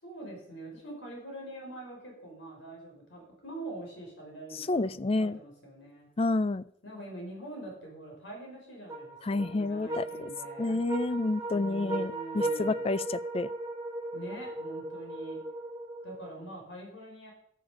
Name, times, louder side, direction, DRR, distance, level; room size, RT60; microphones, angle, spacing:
voice 1, 0.0-6.1 6.8-10.8 11.5-12.8 14.1-15.4 16.0-17.3, right 1 dB, 75° left, 0 dB, 5.7 m, -44 dB
voice 2, 4.5-5.4 6.2-6.6 9.2-10.3 10.6-13.5, left 2 dB, 30° left, 17 dB, 0.4 m, -29 dB
sound 1, 8.9-16.4, right 2 dB, 15° right, 3.2 m, -37 dB
13.5 x 13.5 x 5.2 m, 0.67 s
head